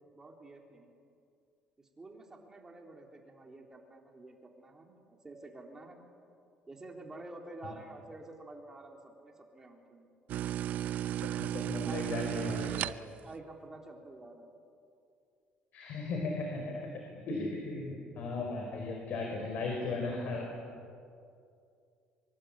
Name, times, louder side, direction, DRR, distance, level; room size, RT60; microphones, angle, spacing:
voice 1, 0.1-0.9 1.8-6.1 6.7-10.1 11.8-12.0 13.0-14.5, right 2 dB, 15° right, 1 dB, 3.7 m, -49 dB
sound 1, 10.3-13.3, right 12 dB, 60° right, 0.6 m, -34 dB
voice 2, 11.2-13.0 15.7-20.5, left 3 dB, 60° left, 1 dB, 4.7 m, -37 dB
25.0 x 24.5 x 8.9 m, 2.4 s
cardioid pair, 145°, 3 cm